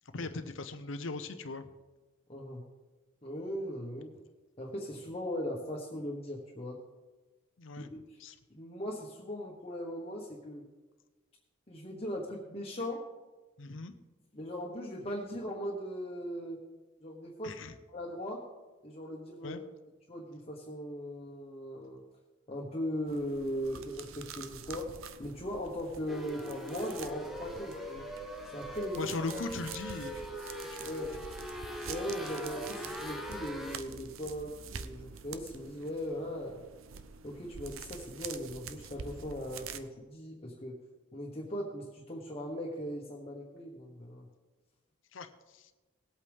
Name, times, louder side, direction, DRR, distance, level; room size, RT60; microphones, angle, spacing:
voice 1, 0.1-1.7 7.6-8.4 13.6-13.9 17.4-17.7 19.4-19.6 29.0-30.9 32.0-32.3 45.1-45.7, left 3 dB, 70° left, 9 dB, 0.7 m, -40 dB
voice 2, 2.3-2.6 3.2-4.1 4.6-6.8 7.8-8.2 8.5-10.7 11.7-13.0 14.3-16.6 17.0-17.6 17.9-18.4 18.8-19.6 20.1-22.0 22.5-24.9 25.2-28.1 28.5-29.1 30.8-31.1 31.8-36.6 37.2-40.8 41.1-44.3, equal, 30° left, -2 dB, 1.3 m, -39 dB
sound 1, 23.1-39.8, right 6 dB, 85° right, 0.7 m, -47 dB
sound 2, 26.1-33.8, equal, ahead, 1.0 m, -42 dB
19.5 x 8.3 x 3.6 m, 1.2 s
head